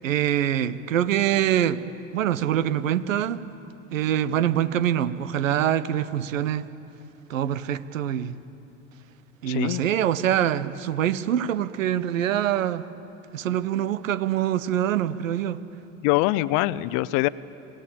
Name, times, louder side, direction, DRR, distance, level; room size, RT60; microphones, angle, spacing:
voice 1, 0.0-1.8 2.1-3.4 3.9-6.7 7.3-8.3 9.4-12.8 13.3-15.6, right 10 dB, 80° right, 15 dB, 1.1 m, -24 dB
voice 2, 9.5-9.8 16.0-17.3, left 18 dB, 55° left, 18 dB, 0.8 m, -23 dB
27.0 x 17.5 x 8.8 m, 2.9 s
hypercardioid pair, 85°, 38 cm